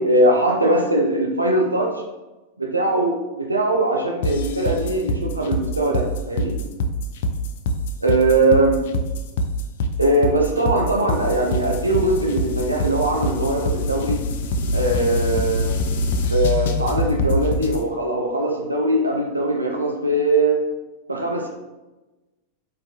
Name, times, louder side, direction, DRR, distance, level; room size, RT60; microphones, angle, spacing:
voice 1, 0.0-2.0 2.6-6.6 8.0-8.8 10.0-14.2 14.7-15.7 16.3-20.6 21.1-21.5, right 2 dB, 80° right, 1 dB, 0.4 m, -21 dB
sound 1, 4.2-17.8, left 1 dB, 55° left, 0.3 m, -24 dB
3.5 x 2.7 x 2.8 m, 1.1 s
figure-of-eight pair, 90°, 0 cm